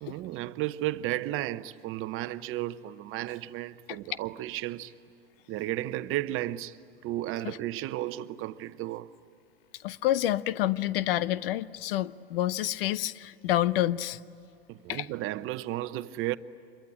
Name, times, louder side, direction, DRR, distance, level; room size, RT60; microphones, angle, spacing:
voice 1, 0.0-4.9 5.5-6.8 7.0-9.1 14.7-16.4, right 15 dB, 45° right, 0.9 m, -33 dB
voice 2, 9.8-14.2 14.9-15.1, left 13 dB, 70° left, 0.8 m, -28 dB
26.0 x 22.5 x 9.8 m
hypercardioid pair, 95°, 30 cm